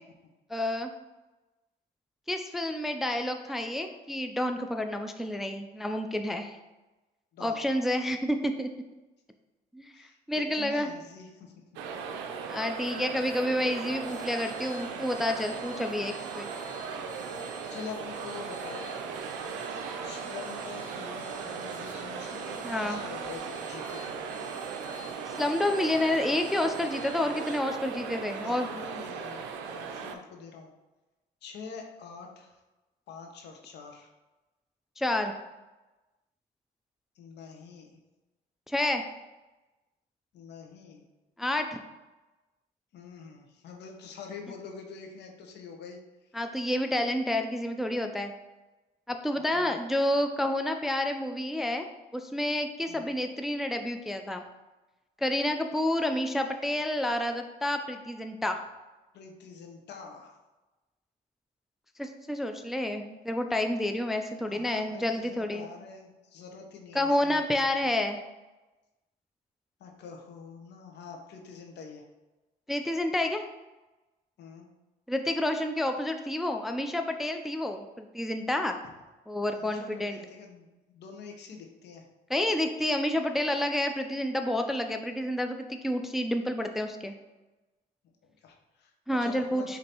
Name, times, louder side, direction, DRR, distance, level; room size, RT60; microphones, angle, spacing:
voice 1, 0.5-0.9 2.3-6.6 7.4-8.7 9.7-10.9 12.5-16.5 22.6-23.0 25.3-28.7 35.0-35.4 38.7-39.0 41.4-41.8 46.3-48.3 49.1-51.9 52.1-54.4 55.2-58.6 62.0-65.7 67.0-68.2 72.7-73.4 75.1-78.8 79.3-80.2 82.3-87.1 89.1-89.8, left 1 dB, ahead, 5 dB, 0.3 m, -29 dB
voice 2, 7.3-7.7 9.9-11.5 17.7-18.9 20.0-24.2 28.3-30.7 31.4-32.6 33.1-34.1 37.2-38.0 40.3-41.0 42.9-46.4 49.3-49.7 52.9-53.2 59.1-60.4 64.5-67.9 69.8-72.0 74.4-74.7 79.6-82.1 88.2-89.8, left 5 dB, 70° left, 3 dB, 0.7 m, -46 dB
sound 1, 11.8-30.2, right 5 dB, 85° right, 0.4 m, -38 dB
sound 2, 13.9-27.6, right 1 dB, 45° right, 0.9 m, -50 dB
5.1 x 2.6 x 2.9 m, 1.1 s
supercardioid pair, 70°, 18 cm